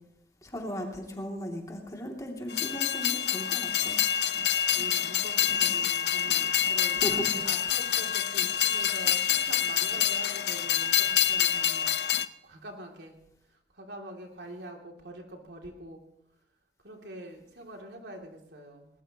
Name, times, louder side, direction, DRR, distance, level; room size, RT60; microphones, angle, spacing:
voice 1, 0.4-4.0 7.0-7.4, equal, 20° left, 0 dB, 2.8 m, -36 dB
Train, 2.5-12.3, left 10 dB, 70° left, 0.7 m, -27 dB
voice 2, 4.7-11.9 12.2-13.1 13.5-16.0 16.8-18.9, right 1 dB, 75° right, 1 dB, 2.9 m, -45 dB
20.0 x 19.5 x 3.0 m, 0.77 s
head